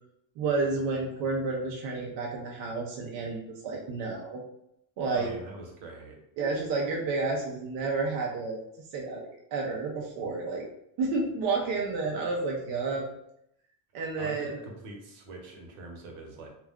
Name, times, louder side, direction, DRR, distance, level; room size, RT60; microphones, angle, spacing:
voice 1, 0.4-4.4 5.0-5.3 6.4-8.7 8.9-10.6 11.0-13.1 13.9-14.5, right 3 dB, 45° right, -2 dB, 0.5 m, -30 dB
voice 2, 5.1-6.2 14.2-16.5, right 2 dB, 70° right, 0 dB, 1.0 m, -43 dB
2.3 x 2.2 x 3.5 m, 0.77 s
cardioid pair, 160°, 48 cm